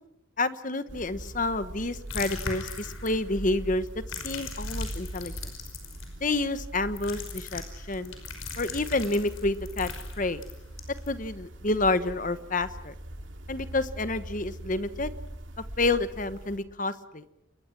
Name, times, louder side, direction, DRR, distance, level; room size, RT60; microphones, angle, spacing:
voice 1, 0.4-3.8 4.2-5.3 6.2-7.6 7.9-8.1 8.6-9.9 10.2-10.4 11.1-12.9 13.5-15.1 15.8-17.2, left 2 dB, 40° left, 13 dB, 1.2 m, -29 dB
sound 1, 0.9-16.6, right 1 dB, 65° right, 2.6 m, -41 dB
sound 2, 2.1-3.4 3.9-6.1 7.0-11.1, left 4 dB, 80° left, 5.5 m, -39 dB
29.0 x 22.0 x 6.1 m, 0.86 s
head